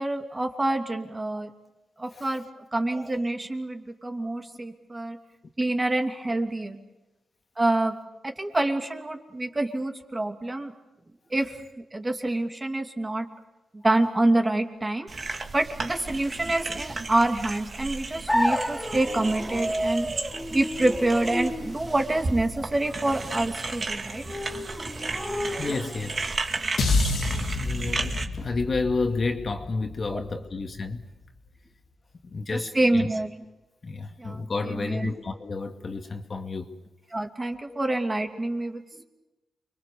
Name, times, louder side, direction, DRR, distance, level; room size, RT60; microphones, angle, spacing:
voice 1, 0.0-1.5 2.0-2.4 2.7-5.2 5.6-6.8 7.6-7.9 8.2-10.7 11.3-11.6 11.9-13.3 13.7-15.1 15.5-20.1 20.5-24.2 30.1-30.2 32.5-33.3 34.2-35.1 37.1-39.0, right 2 dB, 20° right, 2.8 m, -27 dB
sound 1, 15.1-28.2, right 3 dB, 40° right, 2.4 m, -34 dB
sound 2, 18.3-26.2, equal, ahead, 3.1 m, -32 dB
voice 2, 25.6-26.2 27.5-31.0 32.2-33.1 33.8-36.7 37.7-37.8, left 3 dB, 40° left, 2.3 m, -31 dB
sound 3, 26.8-31.1, left 3 dB, 80° left, 3.3 m, -29 dB
29.5 x 23.5 x 7.1 m
cardioid pair, 100°, 0 cm